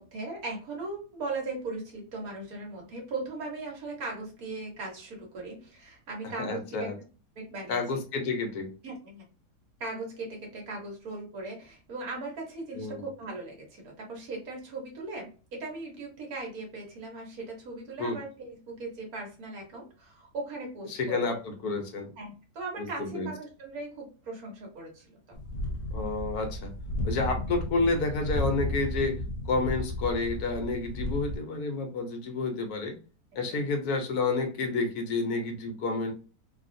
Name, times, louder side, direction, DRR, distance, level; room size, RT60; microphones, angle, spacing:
voice 1, 0.0-6.9 7.3-7.8 8.8-9.2 9.8-21.2 22.2-25.4 33.5-33.7, right 3 dB, 60° right, 0 dB, 1.6 m, -38 dB
voice 2, 6.4-6.9 7.7-8.7 12.7-13.0 18.0-18.2 20.9-22.1 22.8-23.3 25.9-26.7 27.0-32.9 33.3-36.1, left 3 dB, 70° left, 4 dB, 1.3 m, -30 dB
sound 1, 25.3-31.4, left 1 dB, 90° left, 0.5 m, -33 dB
3.4 x 2.4 x 2.6 m, 0.36 s
omnidirectional pair, 1.8 m